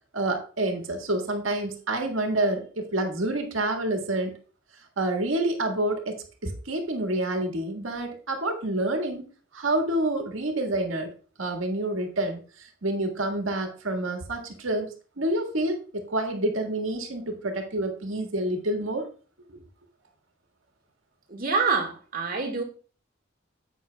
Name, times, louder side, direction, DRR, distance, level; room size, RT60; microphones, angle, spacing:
voice 1, 0.1-4.3 5.0-9.3 9.5-11.1 11.4-19.1 19.5-19.6, right 1 dB, 80° right, 1.7 m, -28 dB
voice 2, 21.3-22.6, right 4 dB, 45° right, 1.8 m, -26 dB
10.5 x 8.4 x 2.3 m
head